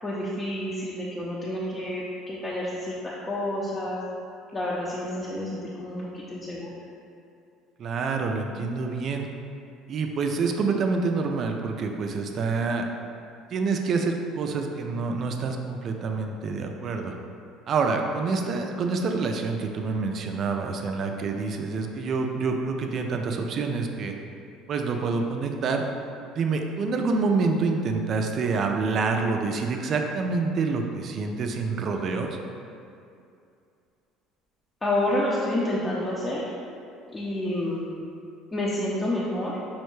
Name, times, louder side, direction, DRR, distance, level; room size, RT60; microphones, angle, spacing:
voice 1, 0.0-4.0 4.5-6.7 34.8-36.5 37.1-37.9 38.5-39.6, left 1 dB, 25° left, -7 dB, 0.6 m, -29 dB
voice 2, 7.8-9.3 9.9-12.8 13.5-17.1 17.7-24.1 24.7-25.8 26.4-32.4, right 4 dB, 50° right, 3 dB, 0.4 m, -27 dB
5.4 x 2.1 x 3.1 m, 2.5 s
hypercardioid pair, 70°, 0 cm